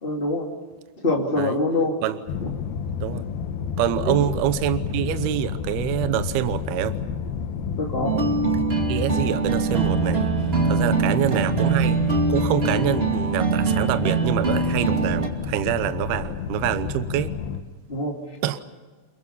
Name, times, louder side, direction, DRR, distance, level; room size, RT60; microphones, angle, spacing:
voice 1, 0.0-0.5 1.0-1.9 2.4-2.5 4.0-4.2 7.8-8.2 17.9-18.1, left 2 dB, 30° left, -1 dB, 1.0 m, -24 dB
sound 1, 2.3-17.6, left 6 dB, 70° left, 2.5 m, -30 dB
voice 2, 3.8-7.0 8.9-10.3 10.6-12.0 12.3-17.3 18.4-18.6, right 12 dB, 75° right, 11 dB, 2.3 m, -25 dB
sound 2, 8.0-15.3, right 4 dB, 55° right, 0.6 m, -23 dB
30.0 x 23.5 x 5.6 m, 1.4 s
omnidirectional pair, 5.7 m